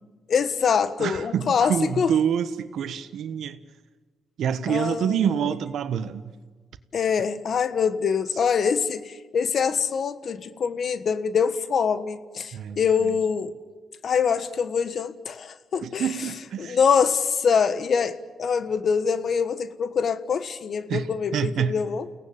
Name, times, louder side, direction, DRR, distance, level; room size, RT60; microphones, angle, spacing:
voice 1, 0.3-2.1 4.7-5.3 6.9-13.5 14.0-16.0 16.6-22.2, left 6 dB, 65° left, 1.4 m, -24 dB
voice 2, 1.0-3.6 4.4-6.3 12.5-13.2 15.8-16.8 20.9-21.8, right 8 dB, 75° right, 1.3 m, -27 dB
30.0 x 18.0 x 8.9 m
supercardioid pair, 50°, 0 cm